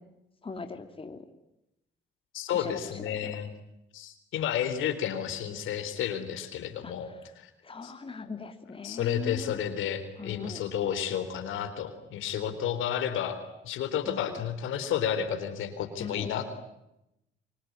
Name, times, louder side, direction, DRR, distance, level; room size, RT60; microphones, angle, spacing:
voice 1, 0.4-1.2 2.5-3.3 6.8-6.9 7.6-9.5 10.2-10.6 14.1-14.4 16.0-16.3, left 4 dB, 25° left, 6 dB, 2.8 m, -40 dB
voice 2, 2.3-3.5 3.9-7.1 7.4-7.5 7.8-7.9 8.8-13.4 13.6-16.5, left 9 dB, 85° left, 9 dB, 3.8 m, -31 dB
25.5 x 24.0 x 9.8 m, 0.87 s
cardioid pair, 90°, 20 cm